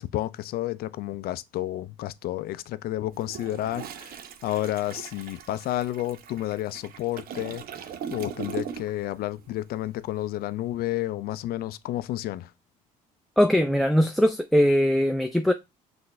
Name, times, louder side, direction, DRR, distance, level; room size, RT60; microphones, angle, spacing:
voice 1, 0.0-7.6 8.1-12.5, left 14 dB, 60° left, 0.4 m, -31 dB
Toilet flush, 3.1-9.1 9.4-9.6, right 8 dB, 60° right, 0.6 m, -39 dB
voice 2, 13.4-15.5, equal, ahead, 0.4 m, -21 dB
5.7 x 2.6 x 3.1 m
hypercardioid pair, 65°, 18 cm